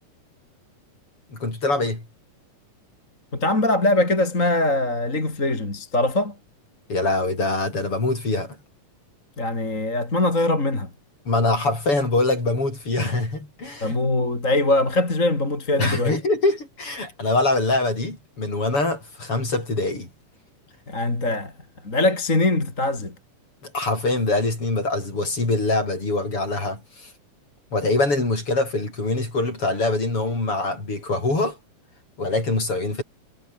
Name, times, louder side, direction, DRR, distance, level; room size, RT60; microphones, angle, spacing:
voice 1, 1.3-2.0 6.9-8.6 11.3-14.0 15.8-20.1 23.6-27.1 27.7-31.6 32.2-33.0, left 2 dB, 40° left, 8.8 m, -24 dB
voice 2, 3.3-6.4 9.4-10.9 13.8-16.1 20.9-21.5 21.8-23.1, left 2 dB, 20° left, 4.5 m, -22 dB
omnidirectional pair, 3.9 m